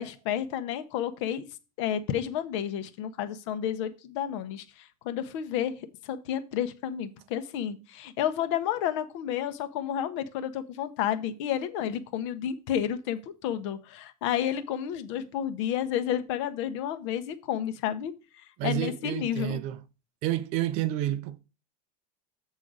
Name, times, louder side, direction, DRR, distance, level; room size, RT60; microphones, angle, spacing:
voice 1, 0.0-1.5 1.8-18.1 18.6-19.6, left 10 dB, 50° left, 0.8 m, -31 dB
voice 2, 18.6-19.8 20.2-21.4, right 13 dB, 35° right, 0.5 m, -29 dB
7.4 x 4.0 x 6.1 m
supercardioid pair, 180°, 20 cm